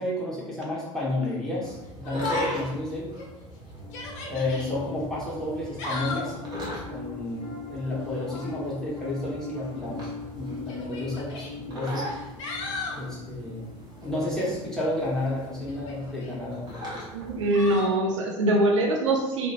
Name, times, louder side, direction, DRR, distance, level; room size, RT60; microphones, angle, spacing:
voice 1, 0.0-3.1 4.3-6.3 6.9-12.1 12.9-13.7 14.0-16.7, left 1 dB, 5° left, -8 dB, 1.0 m, -31 dB
sound 1, 1.6-17.8, equal, 25° right, 0.9 m, -41 dB
Yell, 2.0-2.7 3.2-3.3 3.8-4.7 5.5-6.4 8.1-8.6 9.7-9.8 10.7-11.5 12.1-13.0 15.7-16.3 17.5-18.0, left 3 dB, 60° left, 0.6 m, -35 dB
Piano, 3.7-15.2, left 4 dB, 45° left, 0.9 m, -42 dB
voice 2, 17.1-19.5, right 1 dB, 65° right, 1 dB, 0.4 m, -23 dB
2.4 x 2.1 x 2.8 m, 0.94 s
figure-of-eight pair, 65°, 17 cm